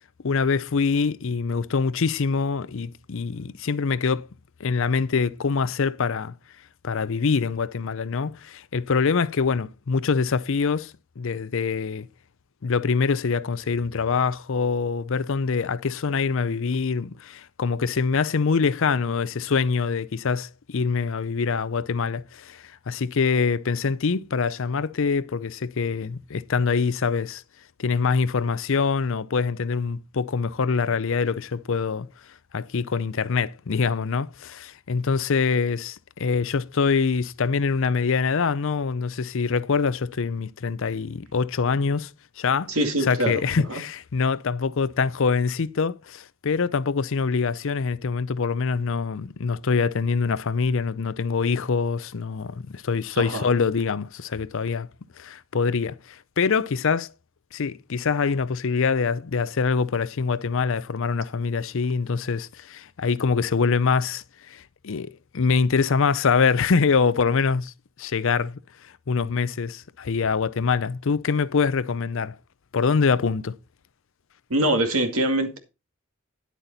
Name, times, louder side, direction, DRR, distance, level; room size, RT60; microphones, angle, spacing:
voice 1, 0.2-4.3 4.6-6.3 6.8-12.1 12.6-27.4 27.8-32.1 32.5-42.1 42.4-42.7 43.0-54.9 55.2-57.1 57.5-67.7 68.0-72.4 72.7-73.5, left 5 dB, 65° left, 0.5 m, -24 dB
voice 2, 42.7-43.4 53.2-53.5 74.5-75.6, right 1 dB, 80° right, 2.3 m, -23 dB
10.5 x 8.2 x 4.1 m
head